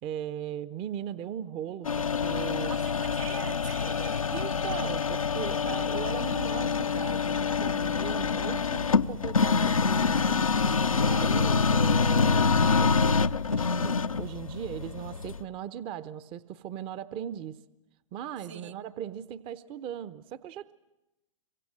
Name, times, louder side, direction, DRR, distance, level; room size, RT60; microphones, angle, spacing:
voice 1, 0.0-2.7 4.3-10.4 10.9-13.2 13.5-17.6 18.1-20.7, right 10 dB, 30° right, 16 dB, 0.9 m, -38 dB
sound 1, 1.8-15.4, left 5 dB, 90° left, 0.8 m, -26 dB
voice 2, 2.6-4.3 18.5-18.8, right 8 dB, 60° right, 9 dB, 1.2 m, -43 dB
26.5 x 24.5 x 7.6 m, 0.96 s
hypercardioid pair, 115°, 17 cm